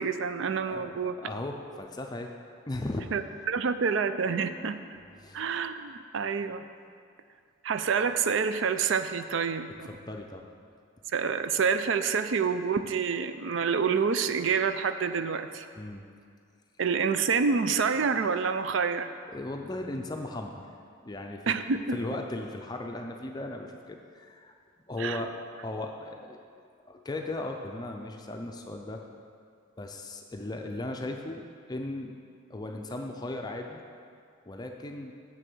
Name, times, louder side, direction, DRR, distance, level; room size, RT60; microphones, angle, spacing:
voice 1, 0.0-1.2 3.1-3.2 3.5-5.0 5.3-6.7 7.6-9.9 11.1-15.7 16.8-19.1 21.5-22.0 25.0-25.2, right 5 dB, 65° right, 10 dB, 0.4 m, -27 dB
voice 2, 0.7-2.3 2.7-3.1 4.3-4.7 5.2-5.4 9.9-10.4 15.8-16.1 19.3-20.7 21.0-21.6 21.9-24.5 24.9-25.3 25.6-26.4 26.8-29.0 29.8-33.8 34.5-35.1, left 2 dB, 20° left, 3 dB, 0.5 m, -37 dB
7.5 x 6.4 x 6.1 m, 2.3 s
head